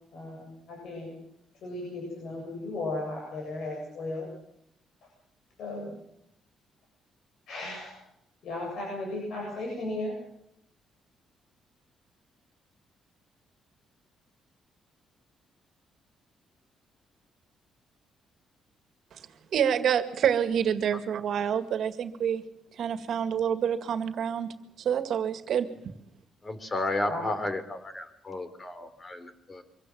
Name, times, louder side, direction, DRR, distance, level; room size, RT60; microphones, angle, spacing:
voice 1, 0.1-1.2 1.6-4.3 5.6-6.0 7.5-8.0 8.4-10.2 27.1-27.3, left 2 dB, 70° left, 0 dB, 8.0 m, -35 dB
voice 2, 19.5-22.4 22.8-24.5 24.8-25.7, right 8 dB, 65° right, 9 dB, 2.1 m, -27 dB
voice 3, 26.4-29.6, left 2 dB, 30° left, 10 dB, 3.4 m, -33 dB
24.5 x 16.5 x 7.6 m, 0.76 s
cardioid pair, 90°, 0 cm